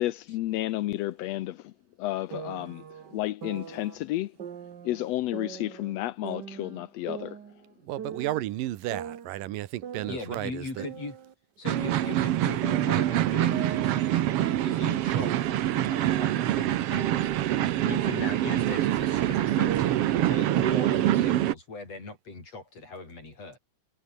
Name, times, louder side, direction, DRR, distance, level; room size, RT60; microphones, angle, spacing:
voice 1, 0.0-1.7 2.0-2.8 3.1-4.3 4.8-7.4, left 15 dB, 75° left, 1.5 m, -31 dB
sound 1, 2.3-4.0 4.4-6.0 6.2-8.5 8.9-11.3 11.7-15.8 16.1-20.1, right 8 dB, 50° right, 1.3 m, -41 dB
voice 2, 7.8-10.9, right 14 dB, 90° right, 2.7 m, -33 dB
voice 3, 10.1-11.2 11.6-23.6, left 3 dB, 50° left, 8.2 m, -39 dB
sound 2, 11.6-21.5, right 13 dB, 70° right, 1.4 m, -25 dB
omnidirectional pair, 3.8 m